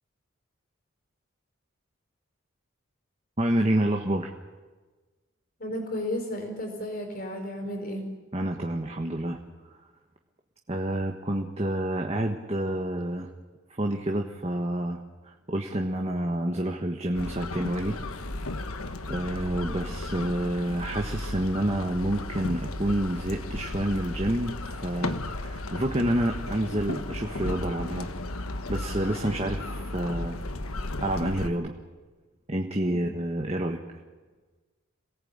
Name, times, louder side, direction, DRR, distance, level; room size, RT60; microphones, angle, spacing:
voice 1, 3.4-4.3 8.3-9.4 10.7-13.3 13.8-15.0 15.2-18.0 19.1-28.1 28.7-30.4 31.0-31.7 32.5-33.8, right 1 dB, 30° right, 2 dB, 1.4 m, -28 dB
voice 2, 5.6-8.1, left 1 dB, 40° left, 4 dB, 4.8 m, -33 dB
sound 1, 17.1-31.5, left 2 dB, 85° left, 1.4 m, -34 dB
27.0 x 18.5 x 8.8 m, 1.3 s
head